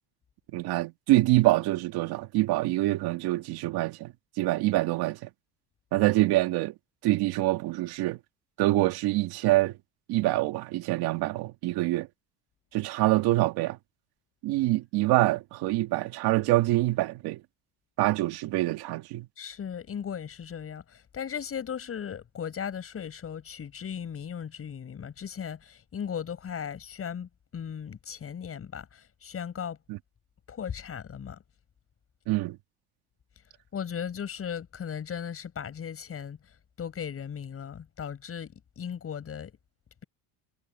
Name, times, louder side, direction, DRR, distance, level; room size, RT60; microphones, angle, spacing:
voice 1, 0.5-5.3 5.9-6.7 7.0-8.2 8.6-9.8 10.1-12.1 12.7-13.8 14.4-17.4 18.0-19.3 29.9-30.0 32.3-32.6, right 17 dB, 70° right, 2.1 m, -25 dB
voice 2, 19.4-29.8 30.5-31.4 33.7-36.4 36.8-39.5, left 8 dB, 35° left, 7.4 m, -37 dB
cardioid pair, 130°, 40 cm